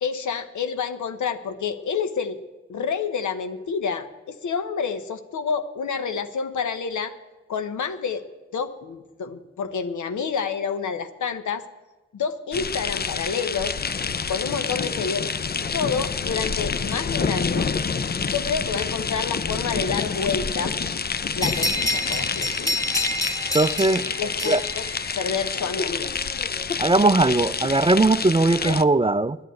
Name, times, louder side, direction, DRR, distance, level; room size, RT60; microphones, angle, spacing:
voice 1, 0.0-2.4 2.7-7.1 7.5-8.2 8.5-11.6 12.1-13.8 14.3-15.3 15.7-17.7 18.1-20.7 21.3-22.8 24.2-24.9 25.2-26.1, left 6 dB, 90° left, 0.9 m, -28 dB
sound 1, 12.5-28.8, left 5 dB, 35° left, 0.5 m, -28 dB
sound 2, 21.4-25.7, left 1 dB, 10° left, 1.4 m, -28 dB
voice 2, 23.5-24.1 24.5-24.6 26.8-29.4, right 2 dB, 20° right, 0.4 m, -19 dB
10.5 x 9.4 x 9.0 m
cardioid pair, 40°, 29 cm